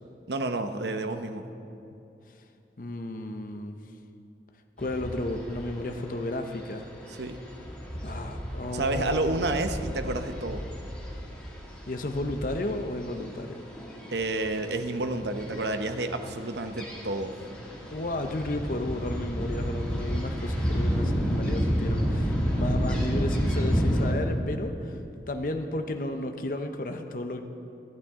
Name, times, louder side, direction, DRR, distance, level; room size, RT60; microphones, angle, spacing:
voice 1, 0.3-1.4 7.2-7.4 8.7-10.6 14.1-17.4, right 2 dB, 75° right, 7 dB, 0.9 m, -30 dB
voice 2, 2.8-3.8 4.8-6.9 8.0-9.3 11.9-13.6 17.9-25.0 25.3-27.4, left 1 dB, 50° left, 6 dB, 0.7 m, -33 dB
sound 1, 4.8-24.1, equal, 5° left, 2.2 m, -31 dB
26.0 x 9.0 x 3.7 m, 2.8 s
head